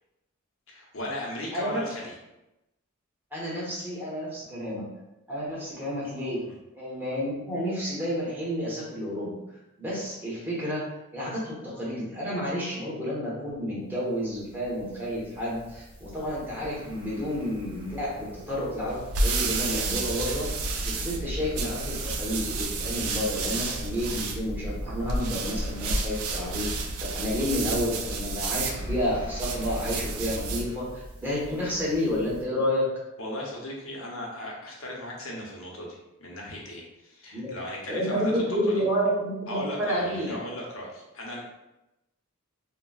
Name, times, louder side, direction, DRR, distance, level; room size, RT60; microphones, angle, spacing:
voice 1, 0.7-2.2 6.4-6.5 33.2-38.8 39.5-41.4, left 1 dB, 70° left, -3 dB, 0.8 m, -37 dB
voice 2, 3.3-4.9 5.3-6.4 6.7-9.4 9.8-10.8 11.1-20.5 20.8-32.9 37.3-37.5 37.9-40.4, equal, 10° right, -7 dB, 0.9 m, -30 dB
sound 1, 13.9-32.4, equal, 25° right, 0.6 m, -44 dB
sound 2, 18.8-30.7, right 3 dB, 85° right, 0.4 m, -31 dB
3.9 x 2.1 x 2.3 m, 0.94 s
head